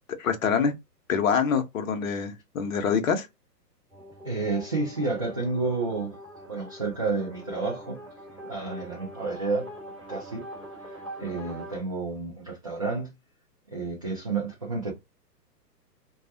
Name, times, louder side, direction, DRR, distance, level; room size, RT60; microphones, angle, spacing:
voice 1, 0.2-0.7 1.1-3.3, left 6 dB, 55° left, 0.7 m, -25 dB
sound 1, 3.9-11.8, right 1 dB, ahead, 1.2 m, -43 dB
voice 2, 4.2-6.1 6.5-8.0 8.4-9.7 10.1-10.4 10.8-13.1 13.7-14.9, right 3 dB, 25° right, 0.3 m, -30 dB
2.2 x 2.1 x 2.7 m
figure-of-eight pair, 120°, 49 cm